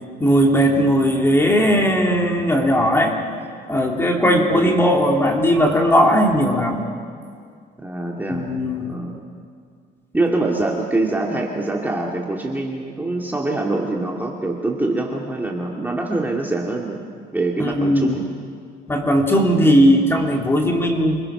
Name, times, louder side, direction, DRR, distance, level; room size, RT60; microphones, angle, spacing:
voice 1, 0.2-3.2 3.7-6.9 8.3-8.9 17.6-18.2 18.9-21.2, equal, 15° left, 1 dB, 3.0 m, -17 dB
voice 2, 4.2-4.8 7.8-8.5 8.8-9.2 10.1-17.0 17.3-18.2, right 2 dB, 10° right, -1 dB, 2.2 m, -24 dB
27.0 x 20.5 x 5.9 m, 2.2 s
cardioid pair, 110°, 17 cm